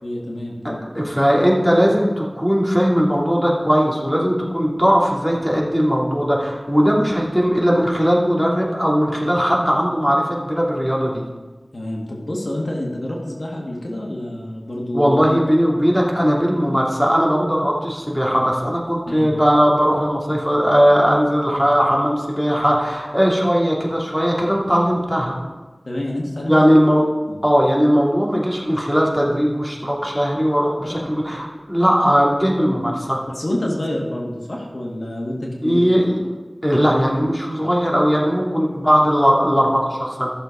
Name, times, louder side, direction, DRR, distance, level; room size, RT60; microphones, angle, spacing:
voice 1, 0.0-1.0 11.7-15.2 19.1-19.3 25.9-26.7 27.3-27.4 30.8-31.1 33.3-35.8, left 1 dB, 70° left, -2 dB, 1.9 m, -28 dB
voice 2, 0.9-11.2 14.9-25.4 26.5-27.0 27.4-33.2 35.6-36.3 36.6-40.3, equal, 5° left, -4 dB, 2.7 m, -18 dB
14.0 x 6.8 x 5.0 m, 1.2 s
wide cardioid pair, 50°, 0 cm